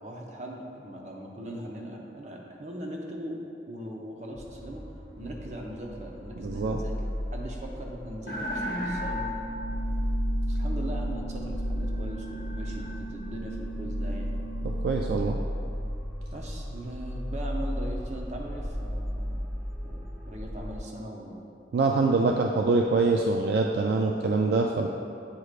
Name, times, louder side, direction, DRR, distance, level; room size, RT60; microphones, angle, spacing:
voice 1, 0.0-3.4 3.7-4.8 5.2-9.3 10.5-14.3 16.3-19.5 19.8-21.4 22.0-22.4, right 1 dB, 40° right, -1 dB, 0.7 m, -40 dB
sound 1, 4.3-20.8, equal, 10° left, 1.3 m, -34 dB
voice 2, 6.4-6.8 14.6-15.4 21.7-24.9, right 3 dB, 60° right, 1 dB, 0.3 m, -24 dB
sound 2, 8.2-14.9, right 1 dB, 50° left, 0.8 m, -37 dB
8.7 x 4.7 x 2.4 m, 2.5 s
head